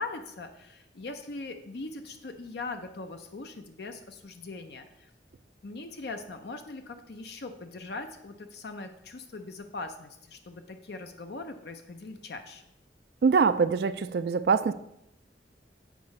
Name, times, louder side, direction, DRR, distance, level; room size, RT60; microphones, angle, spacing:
voice 1, 0.0-5.1 5.6-12.6, left 3 dB, 65° left, 7 dB, 0.6 m, -40 dB
voice 2, 13.2-14.7, right 5 dB, 60° right, 12 dB, 0.3 m, -23 dB
8.3 x 4.8 x 5.2 m, 0.81 s
head